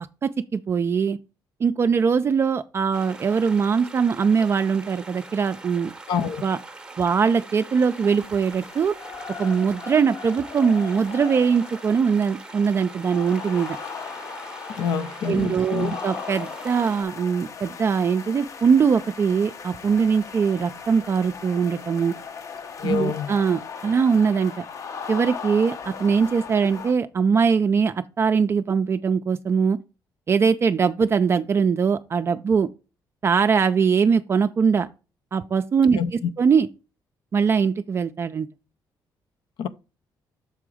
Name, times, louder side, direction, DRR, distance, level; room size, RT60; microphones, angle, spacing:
voice 1, 0.2-1.2 1.6-5.9 6.4-6.6 7.0-8.9 9.4-13.8 15.2-22.1 22.8-24.6 25.1-29.8 30.3-32.7 33.2-34.9 35.3-36.7 37.3-38.5, right 6 dB, 35° right, 0.3 m, -21 dB
sound 1, 2.9-17.0, right 3 dB, 10° right, 0.7 m, -42 dB
voice 2, 6.1-6.4 14.8-16.0 22.8-23.3 36.0-36.1 39.6-39.7, left 6 dB, 80° left, 0.6 m, -26 dB
sound 2, 7.7-26.9, left 6 dB, 40° left, 0.6 m, -38 dB
6.9 x 3.7 x 4.8 m
cardioid pair, 145°, 8 cm